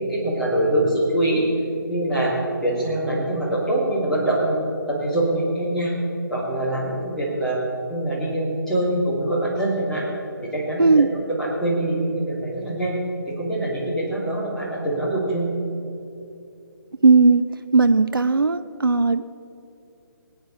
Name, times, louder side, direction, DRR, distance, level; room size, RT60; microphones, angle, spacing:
voice 1, 0.0-1.4 1.9-2.3 2.6-4.6 4.9-5.9 6.3-7.6 7.9-10.0 10.5-13.0 13.3-15.5, right 1 dB, 5° left, -10 dB, 2.8 m, -24 dB
voice 2, 17.0-17.4 17.7-19.3, right 4 dB, 75° right, 12 dB, 0.5 m, -16 dB
21.0 x 9.3 x 4.2 m, 2.7 s
figure-of-eight pair, 145°, 12 cm